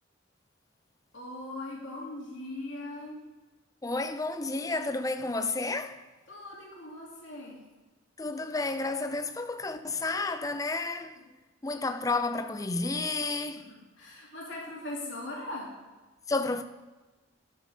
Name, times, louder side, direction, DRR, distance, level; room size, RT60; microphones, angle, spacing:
voice 1, 1.1-3.2 6.3-7.6 13.6-15.7, left 1 dB, 70° left, 2.6 m, -40 dB
voice 2, 3.8-6.0 8.2-11.2 11.6-13.7 16.3-16.6, left 3 dB, 15° left, 0.5 m, -31 dB
11.5 x 6.6 x 5.0 m
head